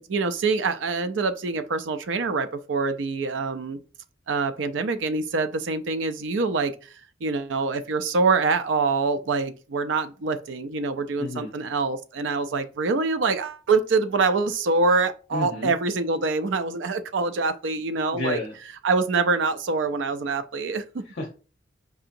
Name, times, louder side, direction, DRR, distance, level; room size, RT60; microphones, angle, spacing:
voice 1, 0.0-3.8 4.3-6.7 7.2-18.4 18.8-21.0, right 4 dB, 80° right, 0.5 m, -25 dB
voice 2, 11.2-11.5 15.3-15.7 18.1-18.6 21.0-21.3, left 2 dB, 55° left, 0.7 m, -30 dB
4.8 x 2.8 x 2.5 m
head